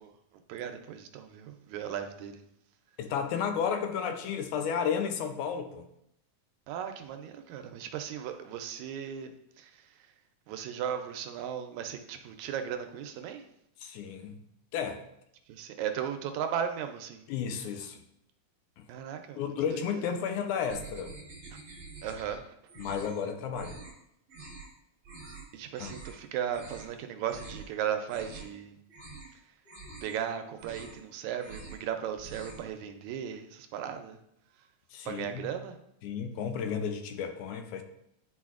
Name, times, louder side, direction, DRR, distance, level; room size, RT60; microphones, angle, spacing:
voice 1, 0.5-2.4 6.7-9.7 10.5-13.4 15.5-17.2 18.9-20.0 22.0-22.4 25.5-28.8 30.0-34.2 35.1-35.8, right 9 dB, 80° right, 7 dB, 1.9 m, -36 dB
voice 2, 3.0-5.9 13.8-14.4 14.7-15.0 17.3-18.0 18.8-18.9 19.4-21.1 22.8-23.8 25.8-25.9 34.9-35.6 36.0-37.8, left 7 dB, 85° left, 7 dB, 2.1 m, -33 dB
sound 1, 20.7-22.4 22.7-23.2 23.5-23.9 24.3-24.7 25.0-25.4 25.7-26.2 26.5-26.9 27.3-27.7 28.0-28.6 28.9-29.3 29.6-30.2 30.5-31.0 31.3-31.8 32.1-32.7, right 3 dB, 45° right, 1.1 m, -46 dB
10.0 x 4.5 x 2.4 m, 0.77 s
omnidirectional pair, 3.4 m